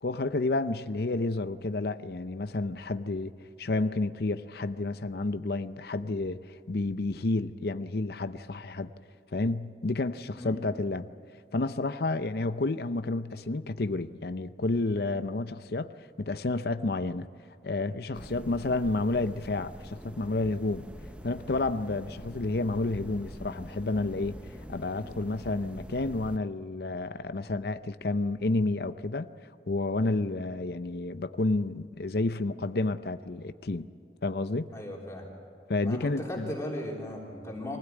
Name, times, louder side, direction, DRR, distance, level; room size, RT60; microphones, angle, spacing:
voice 1, 0.0-3.3 3.6-8.9 9.3-11.1 11.5-17.3 17.6-20.8 21.2-24.4 24.7-29.3 29.7-33.9 34.2-34.7 35.7-36.5, left 2 dB, 60° left, 11 dB, 0.7 m, -30 dB
sound 1, 18.1-26.4, equal, 5° right, 0.7 m, -44 dB
voice 2, 34.7-35.3 35.8-37.8, left 1 dB, 15° left, -3 dB, 3.6 m, -37 dB
24.0 x 16.5 x 9.3 m, 2.6 s
head